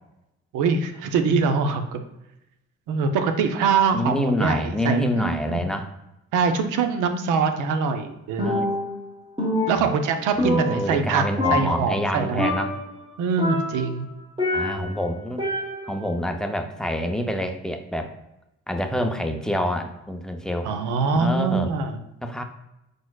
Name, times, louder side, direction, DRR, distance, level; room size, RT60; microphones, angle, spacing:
voice 1, 0.5-2.0 2.9-5.6 6.3-8.6 9.7-11.2 11.5-12.4 13.2-14.1 20.6-22.0, right 5 dB, 90° right, 7 dB, 0.6 m, -23 dB
voice 2, 3.9-5.9 8.4-8.8 9.8-9.9 10.4-12.8 14.5-15.4 15.9-18.1 18.7-20.7 21.2-21.7 22.2-22.4, equal, ahead, 4 dB, 0.5 m, -27 dB
Percussion, 8.4-9.1 9.4-11.1 11.4-12.1 12.4-12.9 13.4-15.0 15.4-16.1, left 1 dB, 15° right, 1.2 m, -26 dB
4.8 x 4.2 x 2.3 m, 0.90 s
cardioid pair, 90°, 30 cm